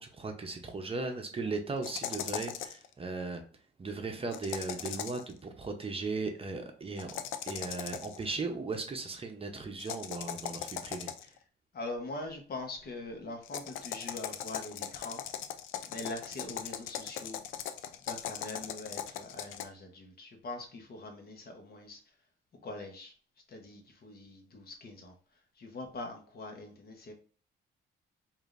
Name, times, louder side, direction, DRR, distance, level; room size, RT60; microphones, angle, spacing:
voice 1, 0.0-3.4 3.8-11.1, right 3 dB, 30° right, 4 dB, 0.7 m, -37 dB
sound 1, 1.8-2.9 4.3-5.3 7.0-8.2 9.8-11.4 13.4-19.6, left 10 dB, 85° left, 0.4 m, -39 dB
voice 2, 11.7-15.2 15.9-17.4 18.0-22.0 22.6-23.1 23.5-25.1 25.6-27.1, left 2 dB, 50° left, 3 dB, 1.1 m, -43 dB
4.9 x 2.7 x 2.5 m, 0.41 s
cardioid pair, 90°, 20 cm